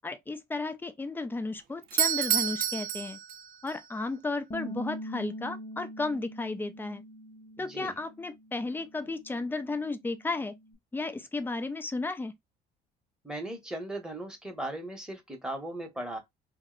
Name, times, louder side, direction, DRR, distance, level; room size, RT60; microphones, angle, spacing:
voice 1, 0.0-3.2 3.6-7.0 7.6-10.5 10.9-12.3, left 3 dB, 10° left, 0.5 m, -34 dB
Doorbell, 1.8-3.8, right 10 dB, 60° right, 0.5 m, -29 dB
Bass guitar, 4.5-10.7, equal, 30° left, 0.9 m, -44 dB
voice 2, 7.6-7.9 13.2-16.2, right 1 dB, 5° right, 1.0 m, -37 dB
2.6 x 2.1 x 3.8 m
cardioid pair, 110°, 17 cm